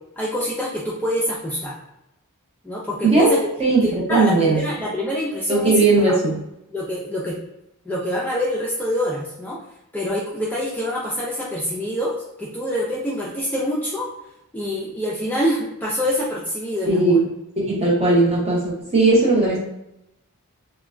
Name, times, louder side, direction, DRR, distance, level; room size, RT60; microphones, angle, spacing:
voice 1, 0.2-1.8 2.6-3.4 3.8-5.7 6.1-6.2 6.7-7.4 7.9-9.6 9.9-14.1 14.5-17.2, equal, 5° left, -6 dB, 0.3 m, -26 dB
voice 2, 3.6-4.6 5.5-6.4 16.9-17.3 17.6-19.6, right 3 dB, 30° right, -4 dB, 0.8 m, -17 dB
3.2 x 2.2 x 2.4 m, 0.85 s
head